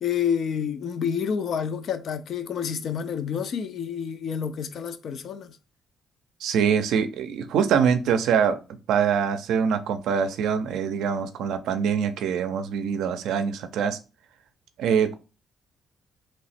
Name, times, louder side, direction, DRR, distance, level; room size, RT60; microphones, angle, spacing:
voice 1, 0.0-5.6, left 7 dB, 65° left, 0.4 m, -29 dB
voice 2, 6.4-8.6 8.9-14.0 14.8-15.1, right 7 dB, 85° right, 0.4 m, -24 dB
3.0 x 2.0 x 4.1 m
cardioid pair, 90°, 0 cm